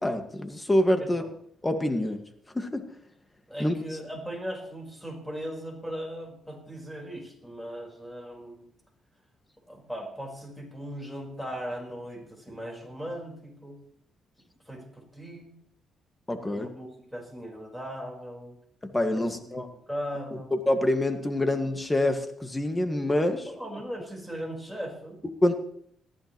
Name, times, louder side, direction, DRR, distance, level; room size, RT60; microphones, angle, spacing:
voice 1, 0.0-1.2 1.6-2.2 2.5-2.9 3.6-3.7 16.3-16.7 18.8-19.7 20.5-23.5 25.4-25.6, left 1 dB, 15° left, 6 dB, 1.9 m, -26 dB
voice 2, 1.0-1.3 3.5-8.7 9.7-13.8 14.7-15.5 16.4-18.6 19.1-20.5 23.5-25.2, equal, ahead, 0 dB, 4.6 m, -38 dB
19.0 x 14.0 x 3.1 m, 0.67 s
cardioid pair, 90°, 0 cm